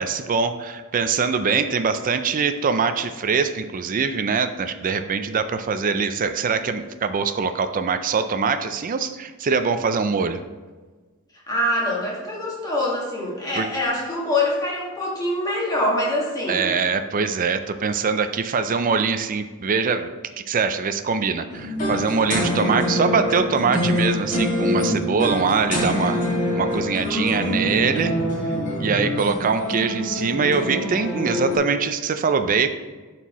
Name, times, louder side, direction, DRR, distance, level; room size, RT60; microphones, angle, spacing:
voice 1, 0.0-10.4 13.6-13.7 16.5-20.1 20.5-26.2 26.5-28.1 28.8-32.7, right 5 dB, 40° right, 10 dB, 0.4 m, -23 dB
voice 2, 11.5-16.7 27.0-27.8, left 1 dB, 15° left, -5 dB, 1.8 m, -25 dB
sound 1, 21.5-31.6, left 1 dB, 35° left, 2.0 m, -25 dB
11.0 x 4.5 x 3.0 m, 1.3 s
head